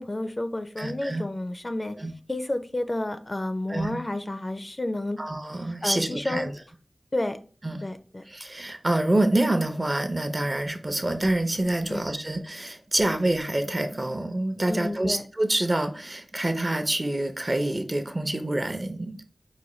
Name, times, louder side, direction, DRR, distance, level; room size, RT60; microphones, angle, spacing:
voice 1, 0.0-1.9 2.3-5.2 5.8-6.4 7.1-7.4 7.8-8.2 11.9-12.0 14.7-15.2, left 1 dB, 35° left, 0.4 m, -30 dB
voice 2, 0.8-1.2 2.0-2.1 3.7-4.0 5.2-6.5 7.6-7.9 8.3-19.2, right 1 dB, 35° right, 0.5 m, -27 dB
4.8 x 2.2 x 3.0 m
wide cardioid pair, 50°, 0 cm